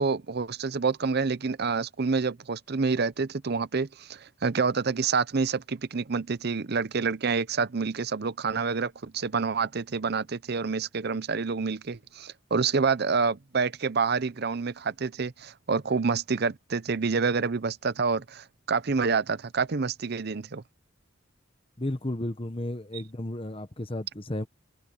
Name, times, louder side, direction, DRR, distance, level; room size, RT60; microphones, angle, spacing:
voice 1, 0.0-20.6, right 5 dB, 55° right, 0.7 m, -28 dB
voice 2, 21.8-24.5, left 1 dB, 30° left, 1.4 m, -33 dB
open air
head